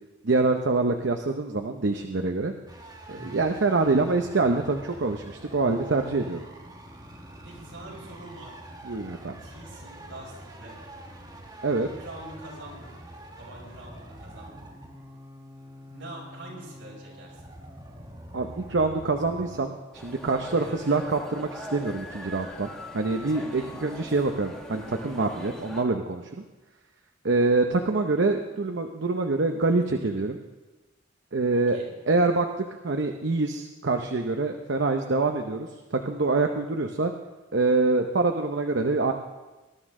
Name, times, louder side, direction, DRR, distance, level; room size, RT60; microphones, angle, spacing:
voice 1, 0.2-2.5 3.1-6.5 8.8-9.4 11.6-11.9 18.3-26.4 27.2-30.4 31.3-31.8 32.1-37.1 37.5-39.1, right 3 dB, 60° right, 5 dB, 0.7 m, -25 dB
sound 1, 2.7-19.6, right 1 dB, 20° right, 1.3 m, -45 dB
voice 2, 3.1-3.4 7.4-8.6 9.4-10.8 11.8-12.9 13.4-14.7 15.9-17.5 20.5-20.8 23.3-23.8 31.5-31.9, right 1 dB, 80° right, -4 dB, 5.4 m, -44 dB
sound 2, 19.9-25.8, equal, 5° left, 1.5 m, -41 dB
19.5 x 11.0 x 3.7 m, 1.1 s
head